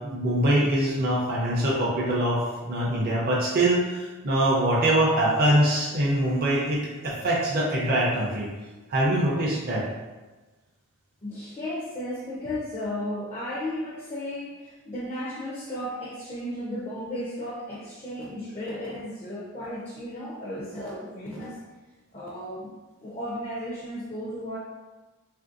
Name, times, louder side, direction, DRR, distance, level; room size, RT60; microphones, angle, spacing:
voice 1, 0.0-8.5 8.9-9.9, right 1 dB, 45° right, -5 dB, 0.5 m, -23 dB
voice 2, 11.2-21.6 22.1-22.7 23.0-24.6, left 1 dB, 30° left, -5 dB, 0.4 m, -34 dB
3.2 x 2.5 x 2.4 m, 1.2 s
head